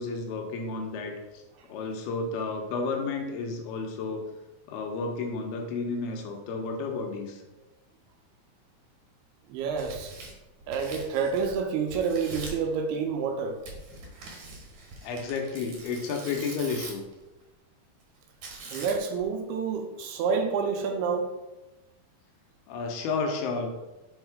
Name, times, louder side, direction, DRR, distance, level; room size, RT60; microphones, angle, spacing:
voice 1, 0.0-1.4 1.7-4.2 4.7-7.4 15.0-17.1 22.7-23.7, left 4 dB, 80° left, 2 dB, 2.8 m, -32 dB
voice 2, 9.5-10.1 10.7-13.6 18.7-21.3, right 5 dB, 85° right, 4 dB, 2.7 m, -28 dB
Tearing, 9.6-11.6 11.9-12.7 13.6-17.1 18.4-19.2, right 3 dB, 60° right, 2.1 m, -43 dB
6.5 x 4.5 x 4.7 m, 1.0 s
omnidirectional pair, 4.7 m